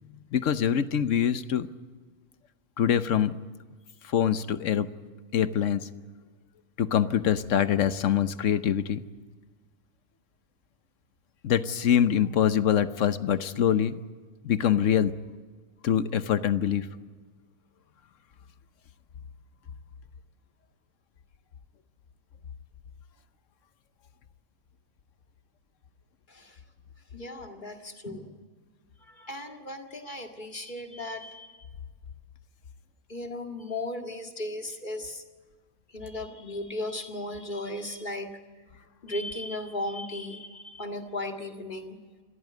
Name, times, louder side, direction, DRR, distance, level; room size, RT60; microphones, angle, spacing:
voice 1, 0.3-1.7 2.8-3.4 4.0-4.9 5.3-5.9 6.8-9.0 11.4-14.0 14.4-15.1 15.8-16.9, left 9 dB, 65° left, 13 dB, 1.1 m, -24 dB
voice 2, 27.1-28.3 29.1-31.6 33.1-35.2 35.9-38.3 39.0-42.0, left 1 dB, 35° left, 4 dB, 2.1 m, -36 dB
27.0 x 14.0 x 9.4 m, 1.5 s
omnidirectional pair, 1.5 m